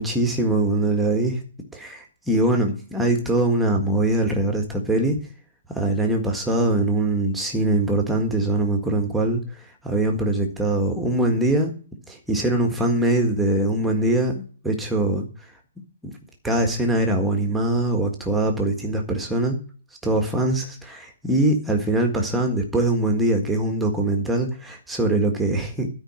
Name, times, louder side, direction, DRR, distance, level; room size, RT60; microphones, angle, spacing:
voice 1, 0.0-1.4 1.7-5.2 5.7-9.4 9.8-11.7 12.1-15.3 16.0-16.1 16.4-19.6 20.0-25.9, right 1 dB, 5° right, 2 dB, 1.7 m, -22 dB
13.0 x 5.3 x 8.9 m, 0.42 s
hypercardioid pair, 175°, 0 cm